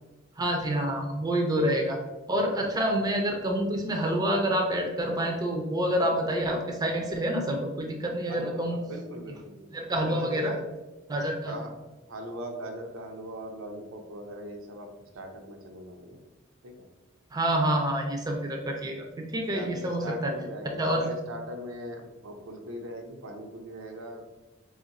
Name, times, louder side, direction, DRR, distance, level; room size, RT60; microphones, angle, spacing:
voice 1, 0.4-2.0 2.3-8.8 9.7-10.5 11.1-11.5 17.3-20.3 20.8-21.1, right 1 dB, 20° right, 1 dB, 0.5 m, -27 dB
voice 2, 8.3-10.6 11.4-11.7 12.0-14.9 15.1-16.2 16.6-16.7 19.5-24.3, right 1 dB, 80° right, 3 dB, 0.6 m, -40 dB
3.6 x 2.4 x 4.0 m, 1.1 s
head